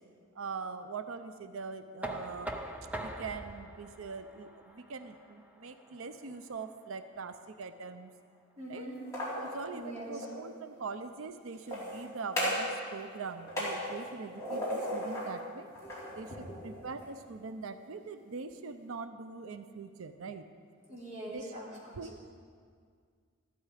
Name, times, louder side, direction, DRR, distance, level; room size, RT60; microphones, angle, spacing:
voice 1, 0.3-2.6 3.0-8.1 8.7-8.9 9.4-15.7 16.2-20.5 21.3-21.6 22.0-22.3, right 4 dB, 80° right, 10 dB, 0.6 m, -42 dB
Knock, 2.0-7.8, right 1 dB, 5° right, 0.7 m, -44 dB
voice 2, 8.6-9.0 9.7-10.2 15.8-16.6 20.9-22.0, right 1 dB, 35° right, -6 dB, 3.6 m, -44 dB
sound 1, 8.9-10.4 11.5-12.8 13.0-15.4 15.7-17.1, left 1 dB, 15° left, 4.0 m, -37 dB
14.5 x 12.0 x 4.9 m, 2.1 s
head